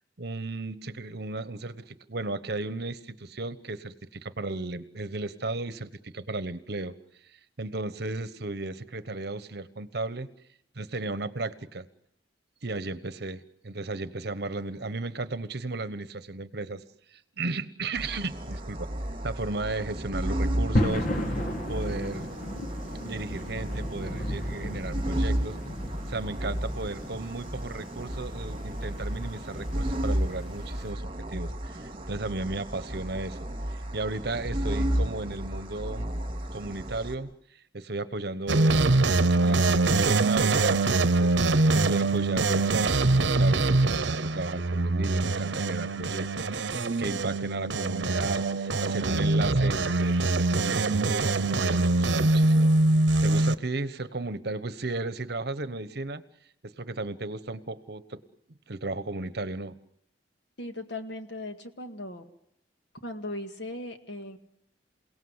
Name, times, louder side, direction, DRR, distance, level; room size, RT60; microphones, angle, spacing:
voice 1, 0.2-6.9 7.6-10.3 10.7-11.9 12.6-16.8 17.1-18.9 19.2-21.1 21.7-22.3 23.0-25.6 26.1-33.4 33.7-36.1 36.5-37.3 37.7-39.1 39.4-52.7 53.2-56.2 56.6-58.2 58.7-59.7, right 2 dB, 60° right, 13 dB, 1.1 m, -34 dB
sound 1, 18.0-37.1, equal, 30° right, 3.5 m, -33 dB
sound 2, 20.8-30.9, left 1 dB, 45° left, 1.9 m, -35 dB
sound 3, 38.5-53.5, right 2 dB, 80° right, 0.9 m, -24 dB
voice 2, 60.6-62.3 63.0-64.4, left 1 dB, 80° left, 7 dB, 2.0 m, -38 dB
28.0 x 18.0 x 8.0 m, 0.75 s
head